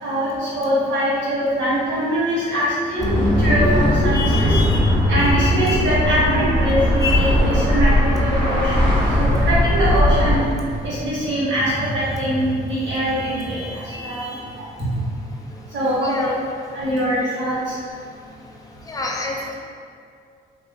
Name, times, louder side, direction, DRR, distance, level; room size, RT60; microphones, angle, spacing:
voice 1, 0.0-3.1 3.4-4.6 5.1-10.4 10.8-14.3 14.6-14.7 15.7-16.3 16.7-17.7, equal, 70° right, -9 dB, 1.3 m, -23 dB
sound 1, 3.0-10.3, left 1 dB, 25° right, 1.2 m, -18 dB
voice 2, 4.1-4.8 5.1-5.9 7.0-7.3 8.9-9.4 12.1-12.2 13.1-14.4 16.0-16.4 18.9-19.3, left 3 dB, 15° left, -2 dB, 0.5 m, -28 dB
2.9 x 2.5 x 3.2 m, 2.3 s
cardioid pair, 90°, 20 cm